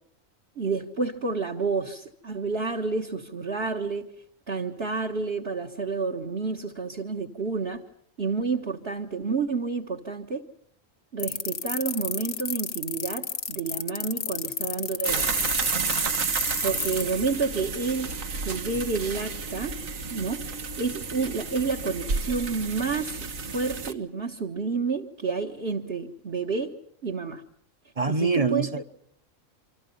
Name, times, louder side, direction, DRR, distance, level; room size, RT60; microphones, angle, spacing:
voice 1, 0.6-4.1 4.5-7.8 8.2-10.5 11.1-15.5 16.6-18.2 18.5-19.7 20.1-23.2 23.5-26.7 27.0-27.4 28.1-28.7, right 4 dB, 50° right, 1.7 m, -29 dB
sound 1, 11.2-17.0, left 7 dB, 85° left, 1.7 m, -30 dB
sound 2, 15.0-23.9, right 5 dB, 80° right, 1.9 m, -31 dB
voice 2, 28.0-28.8, right 4 dB, 30° right, 1.1 m, -24 dB
27.5 x 25.5 x 5.5 m
omnidirectional pair, 1.4 m